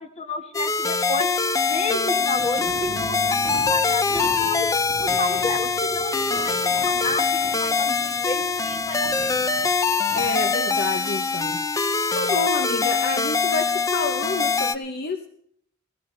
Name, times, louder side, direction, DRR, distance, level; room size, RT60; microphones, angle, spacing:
voice 1, 0.0-1.3 1.7-4.7 5.0-9.3, left 2 dB, 35° left, 7 dB, 1.4 m, -31 dB
sound 1, 0.5-14.8, left 4 dB, 15° left, 0.4 m, -23 dB
sound 2, 2.3-10.4, right 2 dB, 40° right, 1.1 m, -41 dB
Bass guitar, 2.9-9.1, right 4 dB, 60° right, 0.8 m, -45 dB
voice 2, 10.1-11.6 12.1-15.3, left 3 dB, 50° left, 7 dB, 0.7 m, -28 dB
16.5 x 16.0 x 3.2 m, 0.66 s
head